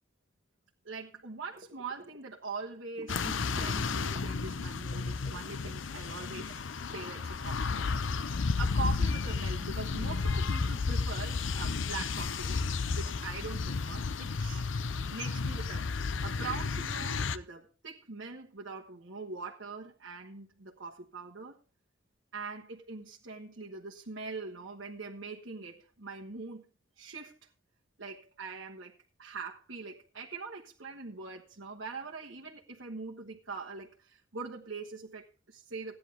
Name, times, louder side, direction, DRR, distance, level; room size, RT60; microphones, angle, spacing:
voice 1, 0.8-7.9 8.6-12.6 12.9-14.7 15.1-15.9 16.2-21.6 22.3-26.6 27.0-27.4 28.0-28.9 29.2-36.0, right 4 dB, 65° right, -3 dB, 1.4 m, -42 dB
sound 1, 1.5-2.2 2.5-4.5 4.8-7.0, right 2 dB, 45° right, 2.1 m, -51 dB
sound 2, 3.1-17.4, left 4 dB, 70° left, 0.6 m, -32 dB
15.5 x 10.5 x 3.5 m, 0.34 s
head